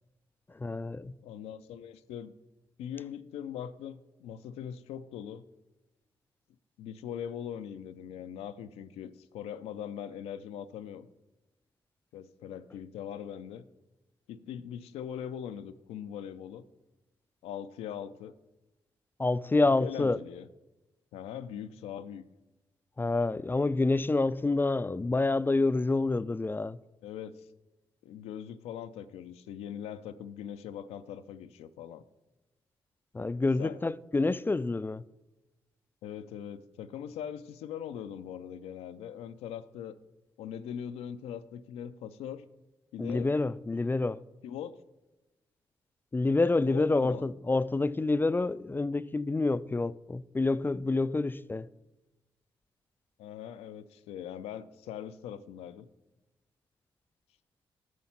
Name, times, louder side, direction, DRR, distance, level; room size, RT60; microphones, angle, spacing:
voice 1, 0.5-1.1 19.2-20.2 23.0-26.8 33.1-35.0 43.0-44.2 46.1-51.7, left 3 dB, 20° left, 0.3 m, -28 dB
voice 2, 1.2-2.3 2.8-5.5 6.8-11.1 12.1-13.7 14.3-16.7 17.4-18.3 19.7-20.5 21.1-22.2 27.0-27.5 28.0-32.0 33.6-33.8 36.0-40.0 40.4-42.4 42.9-43.3 44.4-44.8 46.6-47.2 53.2-55.9, left 9 dB, 85° left, 0.4 m, -41 dB
9.4 x 6.4 x 5.7 m
supercardioid pair, 50°, 10 cm